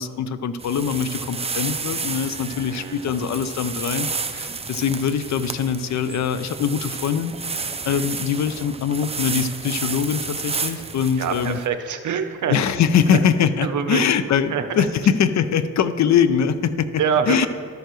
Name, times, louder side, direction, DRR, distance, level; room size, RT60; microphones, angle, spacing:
voice 1, 0.0-7.3 7.9-11.6 12.5-16.9 17.3-17.5, left 7 dB, 55° left, 13 dB, 0.5 m, -22 dB
sound 1, 0.6-11.7, right 4 dB, 20° right, 0.5 m, -31 dB
voice 2, 2.7-3.0 7.8-8.1 11.2-12.6 13.6-14.0 14.5-14.6 17.0-17.5, right 7 dB, 60° right, 8 dB, 0.7 m, -25 dB
13.0 x 6.7 x 3.1 m, 2.2 s
cardioid pair, 95°, 34 cm